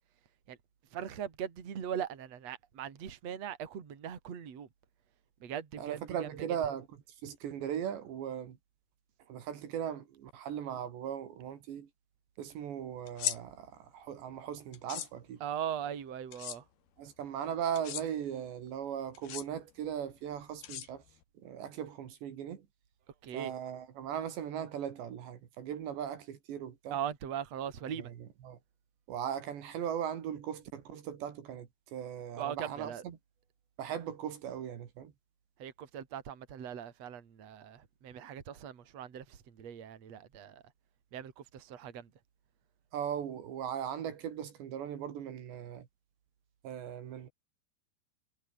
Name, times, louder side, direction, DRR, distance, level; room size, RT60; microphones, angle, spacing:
voice 1, 0.9-4.7 5.4-6.3 15.4-16.6 23.2-23.5 26.9-28.1 32.4-33.0 35.6-40.6 41.1-42.1, right 9 dB, 40° right, 3.5 m, -40 dB
voice 2, 5.8-6.9 7.2-8.6 9.3-11.9 12.4-15.4 17.0-21.0 21.4-22.6 23.3-27.0 28.0-28.1 28.4-28.6 29.1-33.2 33.8-35.1 42.9-45.9 46.6-47.3, right 9 dB, 70° right, 4.6 m, -38 dB
sound 1, 13.1-13.4 14.7-15.1 16.3-16.6 17.7-18.0 19.1-19.4 20.6-21.2, left 12 dB, 65° left, 3.3 m, -37 dB
omnidirectional pair, 5.3 m